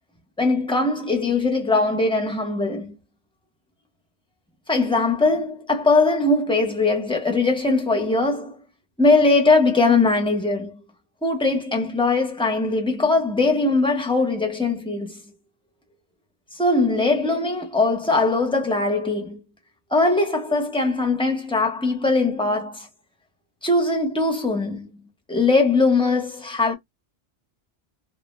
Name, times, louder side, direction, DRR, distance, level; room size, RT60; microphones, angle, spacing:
voice 1, 0.4-3.0 4.7-8.6 9.0-10.8 11.2-15.2 16.6-19.4 19.9-22.9 23.6-26.7, left 3 dB, 5° left, 0.5 m, -21 dB
2.2 x 2.0 x 3.1 m
omnidirectional pair, 1.1 m